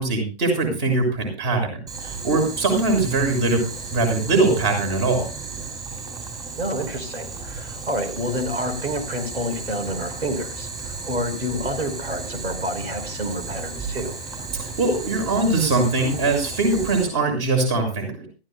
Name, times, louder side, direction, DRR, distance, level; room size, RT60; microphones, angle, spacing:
voice 1, 0.0-3.6 3.9-5.3 14.8-18.3, right 3 dB, 25° right, 4 dB, 6.4 m, -21 dB
Boiling, 1.9-17.0, right 4 dB, 10° right, 6.7 m, -34 dB
voice 2, 6.6-14.2, equal, 75° right, 8 dB, 4.7 m, -29 dB
23.0 x 14.5 x 2.2 m, 0.33 s
figure-of-eight pair, 140°, 33 cm